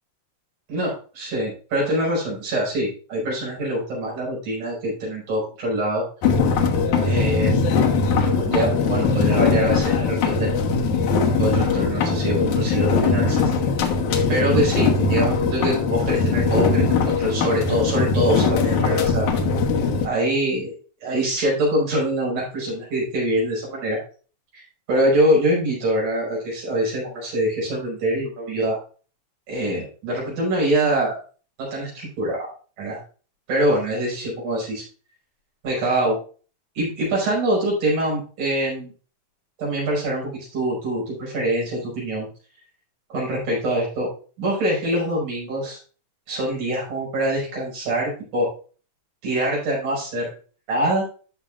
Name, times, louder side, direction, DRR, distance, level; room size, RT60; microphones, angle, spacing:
voice 1, 0.7-6.0 7.0-7.7 8.2-10.8 11.4-13.5 14.3-19.3 20.0-20.7 21.0-24.0 24.5-28.8 29.5-31.2 31.6-32.5 32.8-33.0 33.5-34.8 35.6-36.2 36.7-38.9 39.6-42.3 43.1-44.1 44.4-45.8 46.3-48.5 49.2-50.3 50.7-51.1, right 1 dB, 75° right, -4 dB, 6.7 m, -24 dB
sound 1, 6.2-20.1, left 4 dB, 75° left, 2.6 m, -20 dB
13.5 x 6.2 x 2.5 m, 0.38 s
omnidirectional pair, 3.5 m